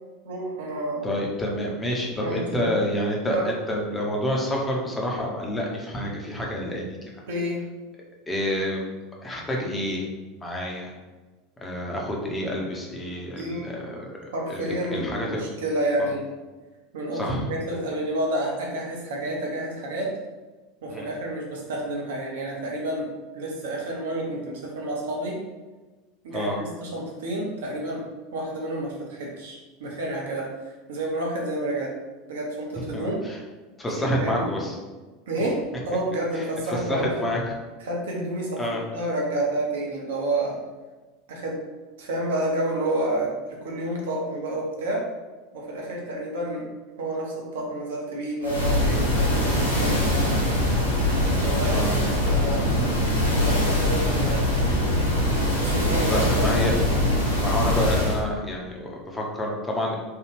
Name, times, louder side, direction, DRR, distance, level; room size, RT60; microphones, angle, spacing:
voice 1, 0.2-1.0 2.2-2.7 3.3-3.5 7.3-7.6 13.3-13.8 14.3-16.2 16.9-20.1 20.8-23.1 23.3-25.4 26.2-28.0 28.3-31.9 32.3-33.2 33.9-34.5 35.3-35.6 35.9-37.3 37.8-38.6 38.9-40.6 41.3-41.6 42.0-45.1 45.5-46.7 47.0-50.5 51.4-51.9 52.2-52.7 53.3-54.5 55.6-56.6, right 1 dB, 65° right, -2 dB, 0.7 m, -29 dB
voice 2, 1.0-7.0 8.3-8.9 9.2-10.1 10.4-10.9 11.6-14.2 14.5-15.5 17.1-17.4 20.9-21.1 26.3-26.6 32.9-33.4 33.8-34.8 36.3-37.5 38.6-38.8 51.7-51.9 56.1-56.8 57.4-60.0, left 1 dB, 15° left, -1 dB, 0.7 m, -28 dB
sound 1, 48.4-58.2, left 1 dB, 85° left, 0.6 m, -22 dB
3.3 x 2.3 x 3.1 m, 1.3 s
figure-of-eight pair, 75°, 0 cm